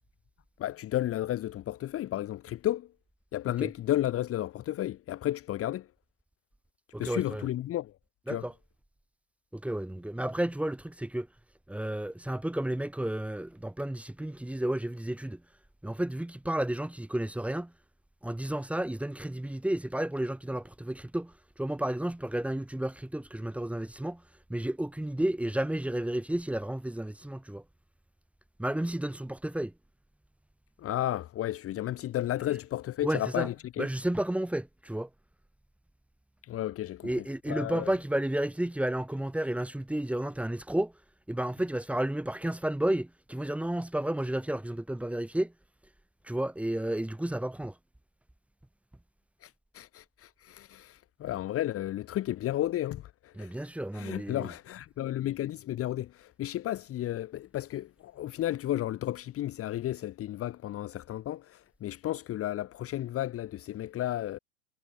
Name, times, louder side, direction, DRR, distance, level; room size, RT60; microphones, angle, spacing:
voice 1, 0.6-2.9 3.3-5.9 7.0-7.9 8.3-8.5 30.8-33.9 36.4-37.1 37.5-37.9 49.4-53.5 53.9-64.4, left 13 dB, 25° left, 2.0 m, -33 dB
voice 2, 6.9-7.5 8.3-8.5 9.5-11.3 11.7-15.4 15.8-17.7 18.2-24.2 24.5-27.6 28.6-29.7 33.0-33.5 33.8-35.1 37.0-40.9 41.3-45.5 46.2-47.7 53.4-54.5, right 1 dB, 5° right, 3.2 m, -32 dB
supercardioid pair, 140°, 49 cm